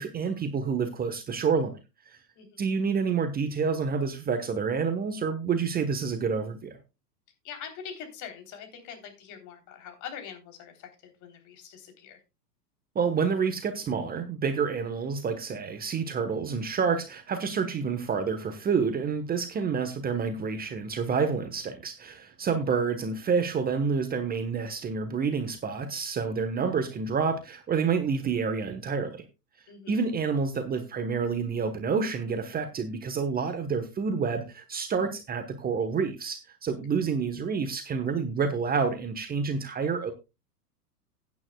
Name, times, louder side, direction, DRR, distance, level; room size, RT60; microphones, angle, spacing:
voice 1, 0.0-1.7 2.1-2.2 2.6-6.8 12.9-29.2 29.9-40.1, right 5 dB, 20° right, 8 dB, 1.1 m, -28 dB
voice 2, 7.4-12.2 22.4-22.5 29.7-30.0, left 7 dB, 40° left, 5 dB, 3.4 m, -43 dB
15.5 x 9.4 x 2.3 m, 0.26 s
hypercardioid pair, 105°, 47 cm